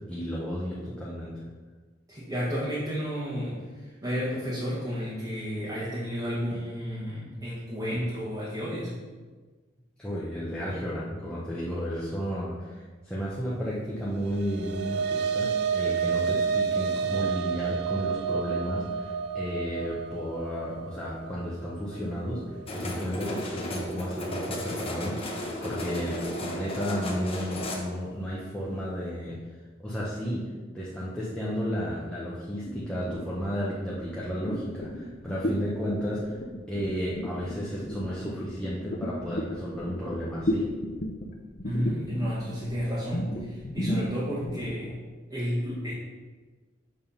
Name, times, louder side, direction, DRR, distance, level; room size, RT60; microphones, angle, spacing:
voice 1, 0.0-1.5 10.0-29.4 29.8-30.5 30.7-36.4 36.7-40.7, equal, 5° left, -7 dB, 0.9 m, -33 dB
voice 2, 2.1-3.6 4.0-8.9 41.6-45.0 45.3-45.9, equal, 20° right, -9 dB, 1.5 m, -31 dB
sound 1, 14.2-22.8, right 6 dB, 60° right, 0.4 m, -30 dB
sound 2, 22.7-27.8, equal, 30° left, 1.1 m, -34 dB
sound 3, 32.6-44.9, left 1 dB, 45° left, 0.7 m, -34 dB
6.9 x 3.6 x 5.6 m, 1.4 s
head